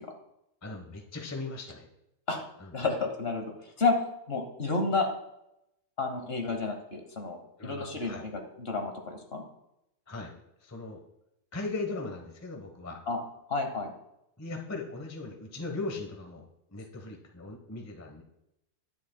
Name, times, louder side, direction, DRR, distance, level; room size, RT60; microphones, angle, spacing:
voice 1, 0.6-1.8 2.6-2.7 7.6-8.2 10.1-10.3 10.6-11.0 11.5-13.0 14.4-18.2, left 3 dB, 15° left, 1 dB, 0.7 m, -38 dB
voice 2, 2.7-3.5 3.8-4.0 4.3-5.1 6.0-7.4 7.6-9.4 13.1-13.2 13.5-13.9, left 3 dB, 45° left, 4 dB, 1.1 m, -30 dB
10.5 x 8.6 x 2.2 m, 0.84 s
omnidirectional pair, 1.7 m